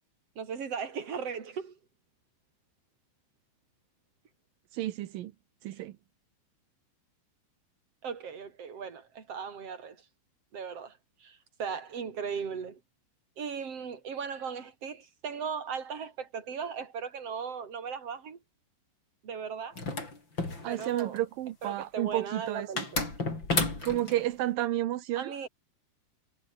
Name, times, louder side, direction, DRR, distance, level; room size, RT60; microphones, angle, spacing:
voice 1, 0.4-1.8 8.0-10.1 10.5-12.8 13.4-18.4 19.2-19.8 20.5-21.2 21.6-23.1 25.2-25.5, right 6 dB, 35° right, 3.9 m, -37 dB
voice 2, 4.7-5.3 5.6-5.9 20.6-22.8 23.8-25.3, right 14 dB, 80° right, 2.1 m, -31 dB
sound 1, 19.8-21.2 22.8-24.2, left 3 dB, 25° left, 5.9 m, -31 dB
omnidirectional pair, 5.5 m